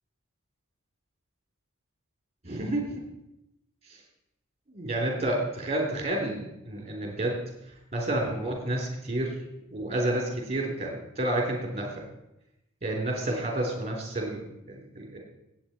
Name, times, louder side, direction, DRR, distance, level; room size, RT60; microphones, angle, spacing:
voice 1, 2.4-3.0 3.9-4.0 4.7-7.4 7.9-9.3 9.7-11.9 12.8-15.2, right 1 dB, 30° right, 0 dB, 3.4 m, -30 dB
17.0 x 8.4 x 4.4 m, 0.89 s
head